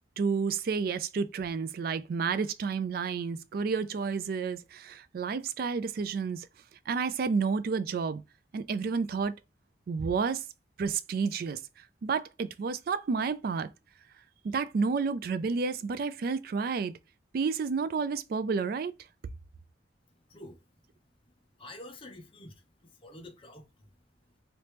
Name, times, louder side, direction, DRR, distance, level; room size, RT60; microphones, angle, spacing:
voice 1, 0.2-6.5 6.9-8.2 8.5-9.3 9.9-10.4 10.8-13.7 14.4-16.9 17.3-18.9, right 5 dB, 55° right, 0.3 m, -30 dB
voice 2, 21.6-22.5 23.0-23.9, left 1 dB, 30° left, 0.6 m, -47 dB
3.0 x 3.0 x 3.2 m
head